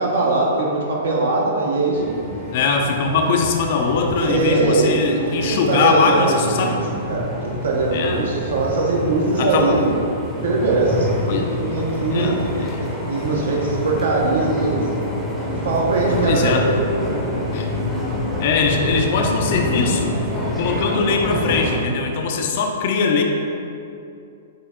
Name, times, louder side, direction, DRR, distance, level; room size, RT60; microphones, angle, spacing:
voice 1, 0.0-2.2 4.2-5.2 5.4-6.8 7.1-10.0 10.4-14.9 15.5-17.2, right 3 dB, 60° right, -2 dB, 0.7 m, -21 dB
sound 1, 1.9-21.8, left 1 dB, ahead, 0.6 m, -27 dB
voice 2, 2.5-6.8 7.9-8.2 9.4-9.7 11.3-11.6 12.1-12.8 16.2-16.7 17.5-17.7 18.4-20.2 20.6-23.2, left 4 dB, 45° left, 3 dB, 0.4 m, -21 dB
6.5 x 2.7 x 2.3 m, 2.6 s
figure-of-eight pair, 110°, 0 cm